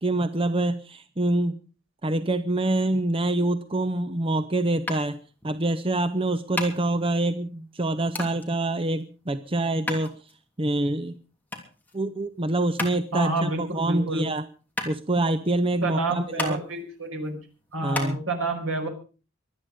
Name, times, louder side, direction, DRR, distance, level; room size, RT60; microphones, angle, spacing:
voice 1, 0.0-1.6 2.0-5.2 5.4-10.1 10.6-11.2 11.9-14.5 14.9-16.6 17.8-18.2, right 2 dB, 25° right, 12 dB, 0.7 m, -26 dB
sound 1, 4.9-18.1, left 2 dB, 10° left, 3.0 m, -37 dB
voice 2, 13.1-14.2 15.8-17.4 17.7-18.9, right 2 dB, 75° right, 4 dB, 5.1 m, -28 dB
24.0 x 9.5 x 5.1 m, 0.37 s
head